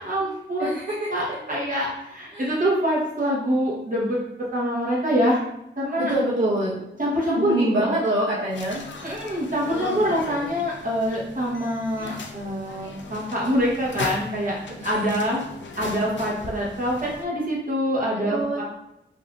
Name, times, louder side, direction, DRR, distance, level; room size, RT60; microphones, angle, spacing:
voice 1, 0.0-0.7 1.1-5.4 5.8-6.1 7.0-7.9 9.0-14.6 14.8-15.4 15.8-18.6, equal, 45° right, -5 dB, 1.1 m, -25 dB
voice 2, 0.6-1.6 2.3-2.6 5.9-6.8 7.3-8.8 9.8-10.1 14.7-14.9 18.3-18.6, right 1 dB, 70° right, -9 dB, 1.0 m, -26 dB
sound 1, 8.5-17.2, left 3 dB, 70° left, 0.5 m, -37 dB
4.2 x 2.6 x 2.4 m, 0.84 s
wide cardioid pair, 90°, 20 cm